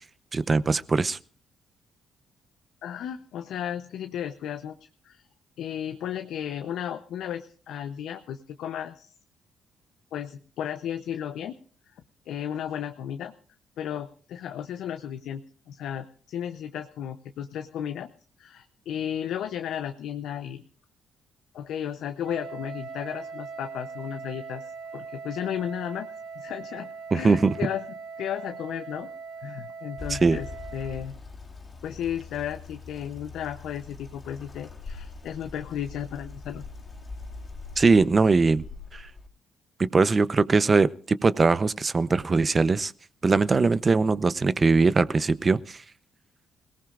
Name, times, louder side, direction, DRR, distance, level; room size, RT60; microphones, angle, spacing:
voice 1, 0.3-1.2 27.1-27.5 30.1-30.4 37.8-38.6 38.9-39.1 39.8-42.9 43.2-45.8, right 4 dB, 30° right, 0.7 m, -21 dB
voice 2, 2.8-5.2 5.6-9.1 10.1-11.6 12.3-13.3 13.8-18.1 18.4-20.6 21.5-26.1 26.4-27.8 28.2-29.1 29.4-30.5 30.7-31.2 31.8-36.6, left 9 dB, 80° left, 0.7 m, -34 dB
Wind instrument woodwind instrument, 22.2-31.1, right 5 dB, 70° right, 2.7 m, -40 dB
sound 1, 30.0-39.3, left 3 dB, 30° left, 3.1 m, -42 dB
28.5 x 18.0 x 2.5 m
cardioid pair, 90°, 0 cm